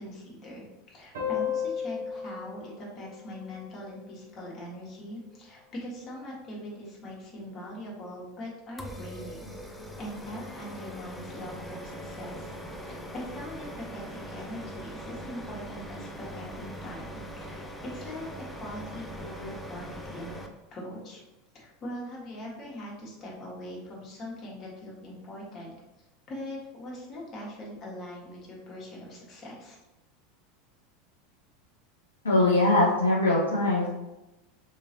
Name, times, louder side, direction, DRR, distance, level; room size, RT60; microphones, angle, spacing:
voice 1, 0.0-9.5 10.0-12.5 12.8-18.3 18.5-20.3 20.7-21.2 21.5-25.7 26.3-29.8, left 1 dB, 40° left, -4 dB, 1.5 m, -41 dB
sound 1, 1.1-4.3, left 8 dB, 70° right, 0.9 m, -35 dB
sound 2, 8.8-20.5, equal, 5° left, 0.5 m, -41 dB
voice 2, 32.2-33.9, left 2 dB, 85° left, -4 dB, 0.6 m, -22 dB
3.7 x 3.0 x 2.8 m, 1.0 s
figure-of-eight pair, 80°, 0 cm